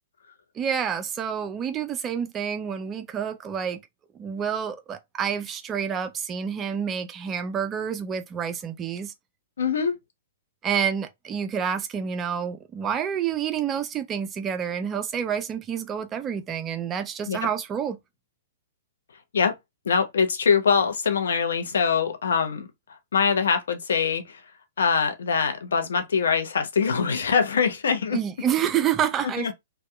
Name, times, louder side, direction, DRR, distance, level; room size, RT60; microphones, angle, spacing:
voice 1, 0.6-3.8 4.1-9.1 10.6-18.0 28.1-29.5, right 8 dB, 25° right, 0.4 m, -28 dB
voice 2, 9.6-9.9 17.3-17.4 19.3-19.5 19.8-22.7 23.1-24.4 24.8-28.2 29.4-29.5, left 6 dB, 70° left, 0.6 m, -23 dB
2.8 x 2.2 x 2.2 m
figure-of-eight pair, 115°, 0 cm